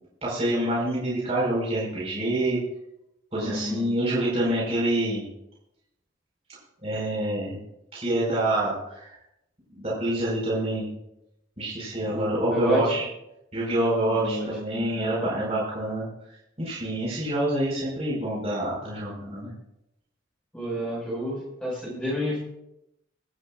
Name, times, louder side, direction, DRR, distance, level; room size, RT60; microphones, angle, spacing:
voice 1, 0.2-2.6 3.3-5.2 6.8-7.6 7.9-9.1 9.7-10.9 11.6-13.1 13.5-16.1 16.6-19.5 20.7-20.8, right 1 dB, 30° right, -6 dB, 5.0 m, -27 dB
voice 2, 3.4-3.8 12.1-12.9 14.1-14.5 14.8-15.5 20.5-22.4, equal, 5° left, -6 dB, 5.6 m, -30 dB
23.0 x 12.5 x 2.5 m, 0.86 s
head